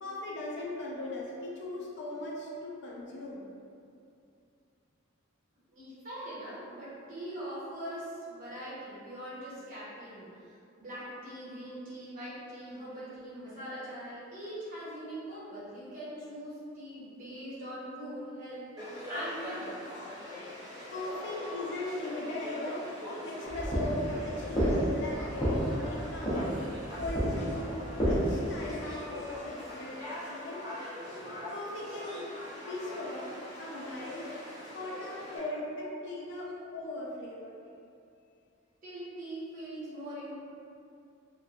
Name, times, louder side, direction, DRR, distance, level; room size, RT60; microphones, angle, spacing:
voice 1, 0.0-3.5 20.9-22.9 23.2-26.6 27.0-27.7 28.0-30.7 31.5-32.3 32.7-34.3 34.7-37.6, left 1 dB, 55° left, -3 dB, 0.4 m, -38 dB
voice 2, 5.7-19.8 21.4-21.5 35.8-35.9 38.8-40.3, right 1 dB, 40° right, -11 dB, 0.9 m, -42 dB
Conversation / Crowd, 18.8-35.4, left 1 dB, 20° right, 0.6 m, -42 dB
sound 1, 23.5-28.6, equal, 20° left, 0.7 m, -30 dB
2.8 x 2.1 x 2.4 m, 2.5 s
head